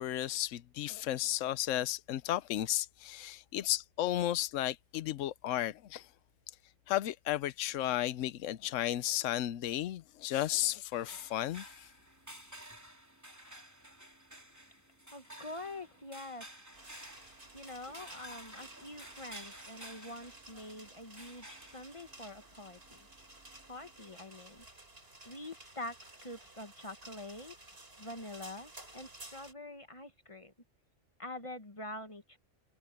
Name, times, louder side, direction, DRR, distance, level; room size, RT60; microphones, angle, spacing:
voice 1, 0.0-6.1 6.9-11.9, left 13 dB, 80° left, 1.0 m, -34 dB
sound 1, 10.9-24.1, right 1 dB, 15° right, 3.2 m, -53 dB
voice 2, 15.1-16.4 17.5-23.0 23.7-24.6 25.2-26.0 26.2-27.5 28.0-30.5 31.2-32.4, left 2 dB, 25° left, 1.3 m, -45 dB
sound 2, 16.7-29.5, right 2 dB, 50° right, 4.4 m, -54 dB
omnidirectional pair, 1.3 m